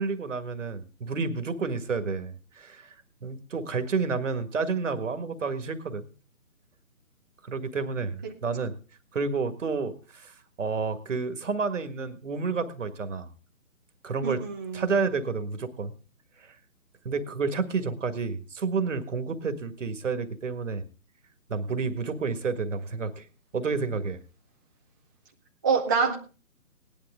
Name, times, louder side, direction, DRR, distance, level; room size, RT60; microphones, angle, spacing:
voice 1, 0.0-3.0 3.2-6.1 7.4-8.7 9.1-13.3 14.0-14.4 14.7-15.9 16.4-16.5 17.0-20.8 21.5-23.3 23.5-24.2, right 4 dB, 55° right, 10 dB, 1.8 m, -30 dB
voice 2, 14.2-14.8 25.6-26.1, right 5 dB, 15° right, -2 dB, 0.7 m, -25 dB
18.0 x 11.0 x 3.6 m, 0.36 s
figure-of-eight pair, 150°, 44 cm